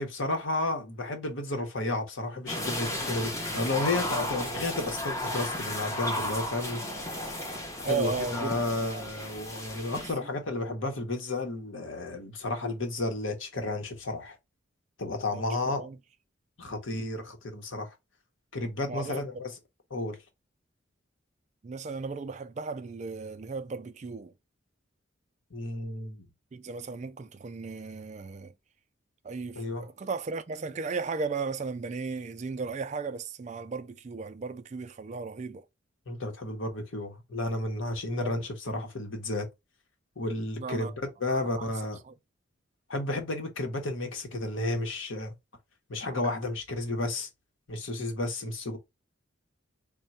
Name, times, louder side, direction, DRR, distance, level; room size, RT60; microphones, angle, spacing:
voice 1, 0.0-6.8 7.8-14.4 15.0-15.9 16.6-18.0 18.5-19.5 19.9-20.2 25.5-26.3 29.6-29.9 36.1-39.5 40.2-40.9 41.2-42.0 42.9-45.3 45.9-47.3 47.7-48.8, left 2 dB, 75° left, 1.0 m, -32 dB
sound 1, 2.5-10.1, left 1 dB, 15° left, 0.8 m, -34 dB
voice 2, 7.8-8.6 8.9-9.0 10.0-10.3 15.3-15.4 15.8-16.0 16.7-16.8 18.9-19.3 21.6-24.3 26.5-28.5 29.2-35.7 38.2-38.4 40.6-40.9 41.3-41.7 42.1-42.2, right 4 dB, 35° right, 0.3 m, -36 dB
3.6 x 2.2 x 4.1 m
head